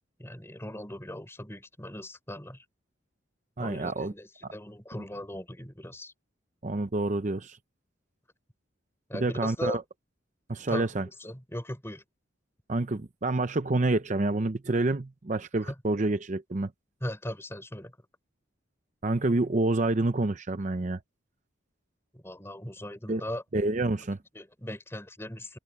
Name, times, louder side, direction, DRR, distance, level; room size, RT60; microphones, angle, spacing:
voice 1, 0.2-2.6 3.6-6.1 9.1-9.8 10.7-10.9 11.2-12.0 15.6-15.7 17.0-17.9 22.1-23.4 24.3-25.6, left 1 dB, 15° left, 5.2 m, -38 dB
voice 2, 3.6-4.1 6.6-7.6 9.1-9.8 10.5-11.1 12.7-16.7 19.0-21.0 23.1-23.2 23.5-24.2, right 2 dB, 40° right, 0.6 m, -28 dB
head